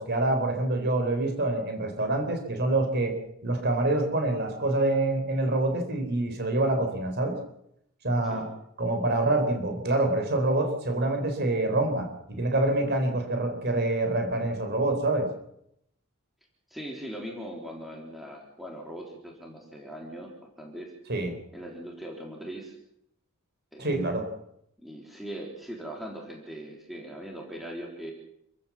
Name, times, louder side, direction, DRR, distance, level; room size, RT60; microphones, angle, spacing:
voice 1, 0.0-3.1 3.4-7.4 8.0-8.5 8.8-15.3 21.1-21.4 23.8-24.3, right 2 dB, 45° right, 5 dB, 4.2 m, -26 dB
voice 2, 16.7-20.3 20.6-20.9 21.5-22.8 23.7-23.9 24.8-28.1, equal, ahead, -1 dB, 3.7 m, -40 dB
28.0 x 15.0 x 7.3 m, 0.75 s
head